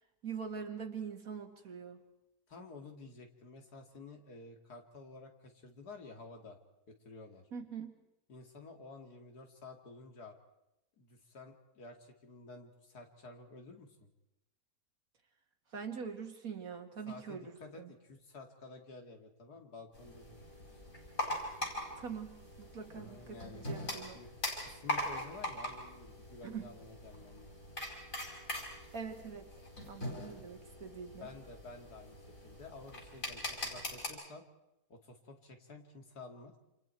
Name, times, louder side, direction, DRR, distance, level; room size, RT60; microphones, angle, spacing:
voice 1, 0.2-2.0 7.5-7.9 15.7-17.9 22.0-24.2 26.4-26.7 28.9-29.5 29.9-31.3, right 6 dB, 65° right, 5 dB, 2.4 m, -43 dB
voice 2, 2.5-6.6 7.0-7.5 8.3-10.4 11.0-14.1 17.1-21.0 22.9-24.3 24.6-27.8 30.1-30.5 31.2-34.4 34.9-36.5, left 3 dB, 90° left, 3 dB, 3.0 m, -52 dB
sound 1, 19.9-34.1, left 1 dB, 60° left, 6.1 m, -42 dB
28.5 x 27.5 x 4.6 m, 0.89 s
omnidirectional pair, 1.6 m